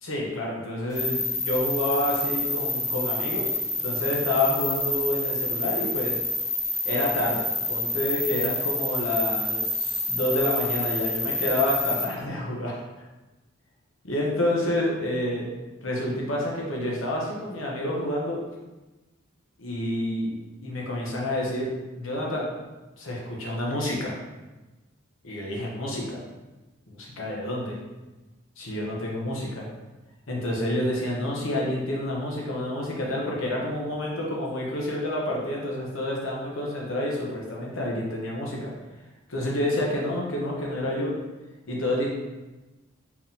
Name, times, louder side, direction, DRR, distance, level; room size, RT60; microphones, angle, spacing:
voice 1, 0.0-3.5 3.8-6.1 6.8-12.8 14.0-15.4 15.8-18.4 19.6-20.4 20.6-21.7 22.0-22.5 23.0-24.1 25.2-26.2 26.9-27.8 28.6-29.7 30.3-38.7 39.3-41.1 41.7-42.1, left 1 dB, 70° left, -2 dB, 1.0 m, -28 dB
sound 1, 0.9-12.0, left 1 dB, 15° left, 0.6 m, -28 dB
4.7 x 3.6 x 2.8 m, 1.1 s
head